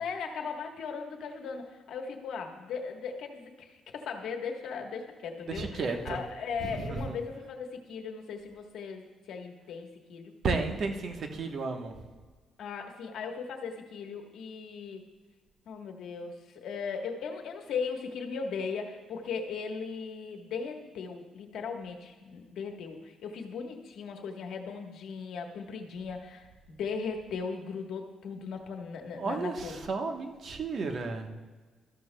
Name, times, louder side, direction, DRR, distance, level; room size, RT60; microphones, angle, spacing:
voice 1, 0.0-10.3 12.6-15.0 15.7-29.9, left 5 dB, 75° left, 3 dB, 1.2 m, -38 dB
voice 2, 5.5-6.2 6.6-7.1 10.4-11.9 29.1-31.3, right 4 dB, 55° right, 4 dB, 1.1 m, -33 dB
13.0 x 12.5 x 2.2 m, 1.3 s
cardioid pair, 90°, 0 cm